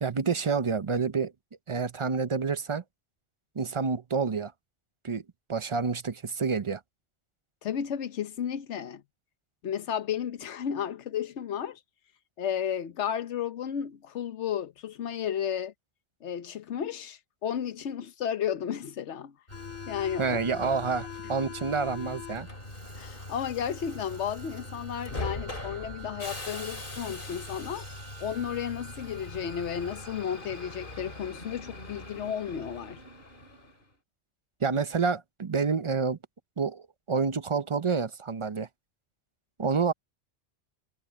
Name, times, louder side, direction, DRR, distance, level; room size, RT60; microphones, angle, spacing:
voice 1, 0.0-1.3 1.7-2.8 3.5-4.5 5.0-5.2 5.5-6.8 20.2-22.5 34.6-36.2 36.6-38.7 39.6-39.9, right 5 dB, 35° right, 0.6 m, -28 dB
voice 2, 7.6-9.0 9.6-11.8 12.4-15.7 16.2-19.3 19.9-20.4 23.0-27.8 28.2-33.0, left 8 dB, 85° left, 1.2 m, -33 dB
Subway metro underground, 19.5-33.8, left 2 dB, 50° left, 3.6 m, -41 dB
omnidirectional pair, 1.1 m